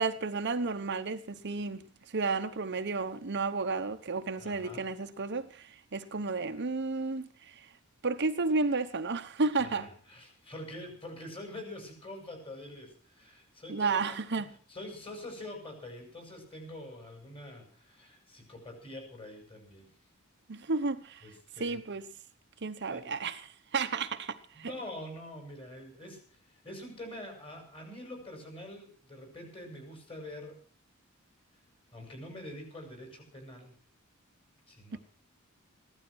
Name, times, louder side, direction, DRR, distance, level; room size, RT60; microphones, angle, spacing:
voice 1, 0.0-1.9 2.1-7.7 8.0-9.9 13.7-14.5 20.5-21.2 21.6-22.0 22.6-24.7 34.9-35.0, right 4 dB, 55° right, 1.0 m, -32 dB
voice 2, 4.4-4.9 9.6-14.2 14.7-19.9 21.2-21.8 22.9-23.1 24.5-30.6 31.9-33.8 34.7-35.0, left 1 dB, 25° left, 6.4 m, -45 dB
16.5 x 12.5 x 6.3 m
head